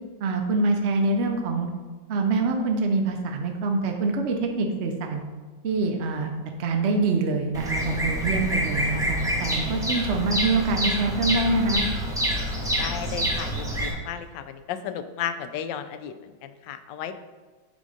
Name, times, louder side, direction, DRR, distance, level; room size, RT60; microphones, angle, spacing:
voice 1, 0.2-1.7 2.1-5.2 5.6-6.3 6.6-11.8, right 3 dB, 65° right, 3 dB, 0.6 m, -25 dB
Bird vocalization bird call bird song, 7.5-13.9, equal, 5° right, 0.6 m, -27 dB
voice 2, 12.8-17.1, left 9 dB, 75° left, 10 dB, 1.2 m, -34 dB
7.3 x 3.9 x 4.9 m, 1.3 s
omnidirectional pair, 2.1 m